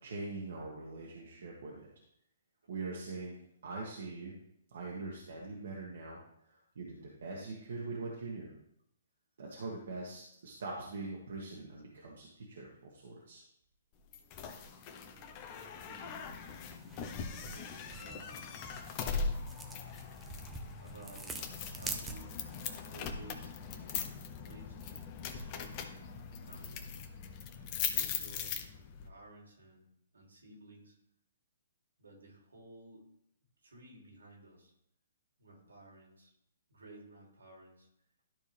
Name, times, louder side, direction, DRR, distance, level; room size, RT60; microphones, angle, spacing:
voice 1, 0.0-1.9 2.7-3.3 3.6-4.3 4.7-6.2 6.4-8.5 9.4-13.4 19.7-19.9, right 3 dB, 70° right, -3 dB, 1.8 m, -43 dB
sound 1, 14.1-29.1, left 6 dB, 35° left, 1.0 m, -40 dB
voice 2, 15.7-16.1 17.2-18.7 20.8-21.4 21.7-22.4 22.9-24.0 24.4-26.0 26.3-26.8 27.3-27.4 27.8-28.6 29.0-29.9 30.1-31.0 32.0-33.0 33.6-34.7 35.4-36.3 36.7-37.9, right 2 dB, 90° right, -1 dB, 3.2 m, -55 dB
sound 2, 16.4-22.6, right 3 dB, 10° right, 1.0 m, -47 dB
12.0 x 4.6 x 3.5 m, 0.74 s
hypercardioid pair, 135°, 0 cm